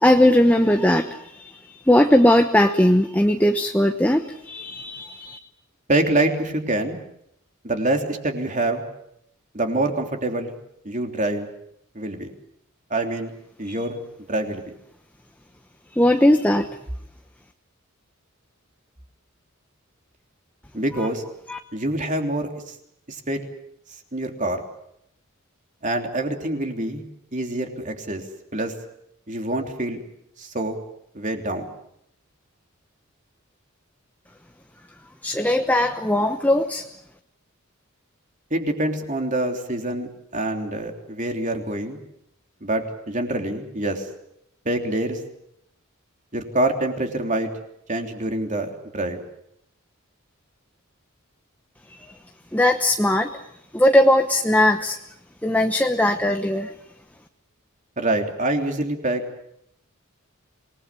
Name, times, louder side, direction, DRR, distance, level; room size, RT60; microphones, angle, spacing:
voice 1, 0.0-5.4 13.6-13.8 15.9-16.7 21.5-21.6 35.2-36.8 52.5-53.4 53.7-55.0 55.4-56.7, left 1 dB, 10° left, 6 dB, 1.0 m, -19 dB
voice 2, 5.9-7.0 7.6-8.8 9.5-10.5 10.8-11.5 12.0-12.3 12.9-13.3 13.6-14.0 14.3-14.7 20.7-21.2 21.7-22.8 23.1-23.4 24.1-24.6 25.8-27.0 27.3-28.2 28.5-28.7 29.3-30.0 30.4-30.8 31.1-31.7 38.5-42.0 42.6-44.1 44.7-45.2 46.3-47.5 47.9-49.2 58.0-59.2, right 1 dB, 35° right, 4 dB, 3.3 m, -25 dB
27.0 x 20.0 x 8.4 m, 0.75 s
head